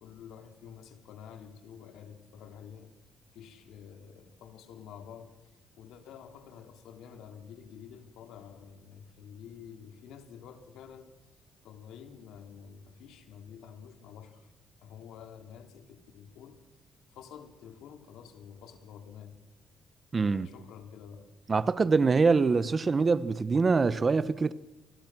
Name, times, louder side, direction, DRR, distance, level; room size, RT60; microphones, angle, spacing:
voice 1, 0.0-2.9 3.3-11.1 11.6-14.5 14.8-16.6 17.1-19.3 20.2-21.3, left 8 dB, 85° left, 3.0 m, -49 dB
voice 2, 20.1-20.5 21.5-24.5, right 4 dB, 35° right, 1.0 m, -24 dB
28.5 x 21.5 x 6.2 m
cardioid pair, 90°, 0 cm